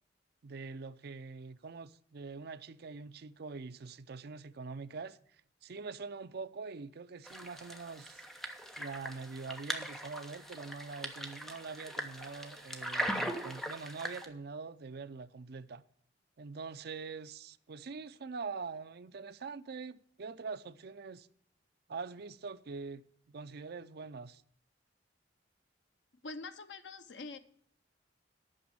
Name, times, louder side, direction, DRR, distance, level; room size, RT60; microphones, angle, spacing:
voice 1, 0.4-5.2 5.6-8.2 8.8-15.8 16.4-21.3 21.9-23.0 23.3-24.4, right 4 dB, 60° right, 0.5 m, -44 dB
sound 1, 7.3-14.2, right 1 dB, ahead, 0.9 m, -40 dB
voice 2, 26.2-27.4, left 3 dB, 75° left, 0.7 m, -44 dB
8.9 x 6.2 x 8.5 m
head